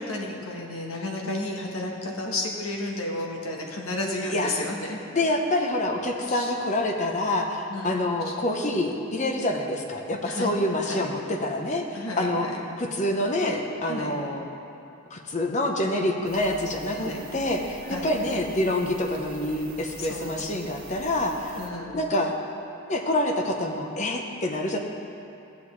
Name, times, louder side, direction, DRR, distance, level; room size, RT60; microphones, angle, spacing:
voice 1, 0.0-5.0 6.3-6.5 7.7-8.0 10.3-11.1 11.9-12.6 13.9-14.2 16.9-17.2 17.9-18.1 20.0-20.4 21.5-22.0, left 2 dB, 85° left, 0 dB, 1.4 m, -32 dB
voice 2, 4.3-4.7 5.1-12.5 12.8-14.5 15.1-21.6 21.9-22.3 22.9-24.8, left 1 dB, 35° left, 2 dB, 0.8 m, -27 dB
sound 1, 16.2-21.7, right 4 dB, 45° right, 0.7 m, -46 dB
15.5 x 7.1 x 3.2 m, 2.7 s
head